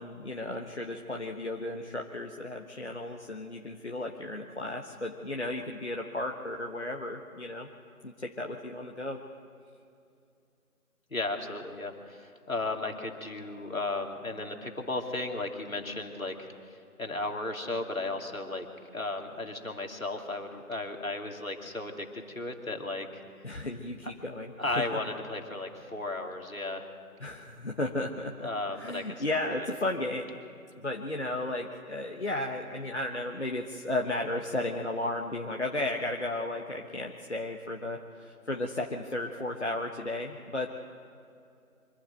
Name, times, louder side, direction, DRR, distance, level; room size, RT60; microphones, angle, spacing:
voice 1, 0.0-7.7 8.0-9.2 23.4-24.9 27.2-28.5 28.7-30.4 30.8-40.9, left 2 dB, 50° left, 1 dB, 1.3 m, -34 dB
voice 2, 11.1-18.7 18.9-23.2 24.6-26.9 28.4-29.0 29.5-29.7, left 2 dB, 65° left, 3 dB, 2.8 m, -35 dB
24.5 x 11.5 x 9.2 m, 2.5 s
figure-of-eight pair, 165°, 44 cm